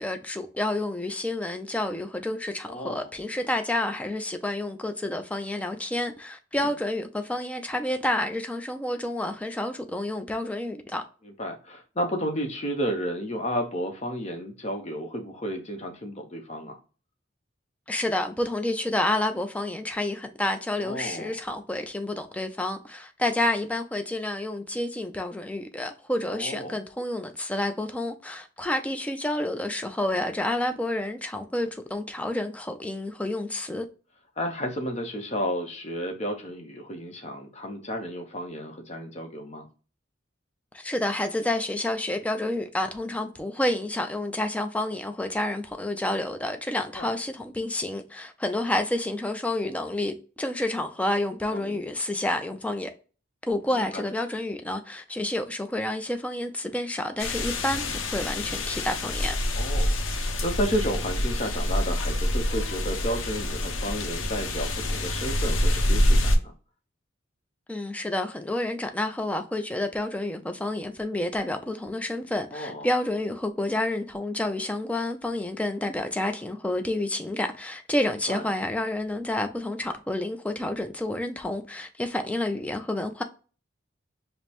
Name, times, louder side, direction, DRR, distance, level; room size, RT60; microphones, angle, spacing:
voice 1, 0.0-11.0 17.9-33.8 40.7-52.9 53.4-59.4 67.7-83.2, left 1 dB, 5° left, 0.3 m, -29 dB
voice 2, 2.6-3.1 11.2-16.7 20.8-21.3 26.3-26.8 34.4-39.7 47.0-47.1 51.5-51.8 53.7-54.0 59.5-66.5 72.5-72.9 78.3-78.5, equal, 35° left, 0.8 m, -32 dB
sound 1, 57.2-66.4, left 1 dB, 85° left, 0.6 m, -26 dB
5.0 x 2.0 x 2.8 m
head